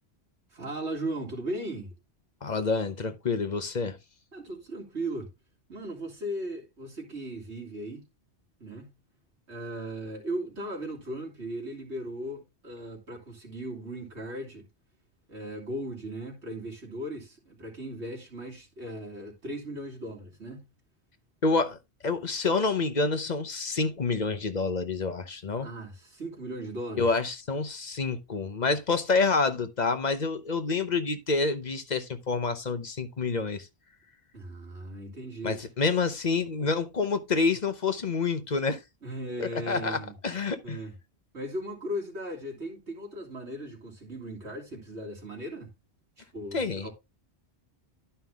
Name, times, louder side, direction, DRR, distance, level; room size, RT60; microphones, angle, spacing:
voice 1, 0.5-2.0 4.3-5.3 5.7-8.1 8.6-8.9 9.5-14.6 15.3-20.7 25.6-27.2 34.3-35.6 39.0-40.2 40.6-41.0 41.3-45.7 46.2-46.9, right 1 dB, 80° right, 3.4 m, -37 dB
voice 2, 2.4-4.0 21.4-21.8 22.0-25.7 27.0-33.7 35.4-38.8 39.4-40.0 40.2-40.8 46.5-46.9, left 4 dB, 45° left, 1.0 m, -28 dB
11.0 x 5.6 x 3.5 m
omnidirectional pair, 1.1 m